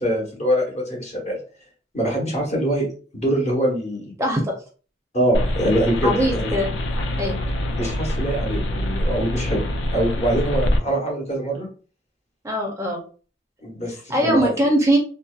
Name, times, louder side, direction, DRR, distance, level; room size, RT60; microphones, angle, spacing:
voice 1, 0.0-1.4 1.9-2.9 3.1-4.1 5.1-6.5 7.8-9.6 9.9-11.7 13.6-14.5, right 1 dB, 40° left, -2 dB, 0.9 m, -23 dB
voice 2, 4.2-4.5 6.0-6.7 7.2-7.4 12.4-13.0 14.1-15.0, right 1 dB, 15° right, 1 dB, 0.5 m, -21 dB
sound 1, 5.3-10.8, left 1 dB, 85° left, 0.4 m, -25 dB
2.6 x 2.1 x 2.3 m, 0.38 s
head